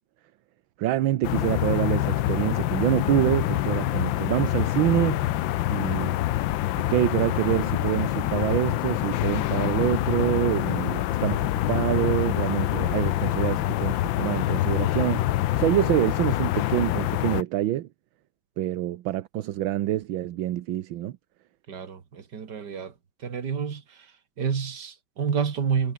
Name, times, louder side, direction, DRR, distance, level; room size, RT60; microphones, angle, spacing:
voice 1, 0.8-5.2 5.7-6.2 6.9-15.3 15.6-17.9 18.6-21.1, right 13 dB, 75° right, 1.6 m, -26 dB
sound 1, 1.2-17.4, left 15 dB, 75° left, 1.4 m, -26 dB
voice 2, 21.7-22.9 23.2-23.8 24.4-25.9, right 6 dB, 55° right, 2.5 m, -29 dB
omnidirectional pair, 2.3 m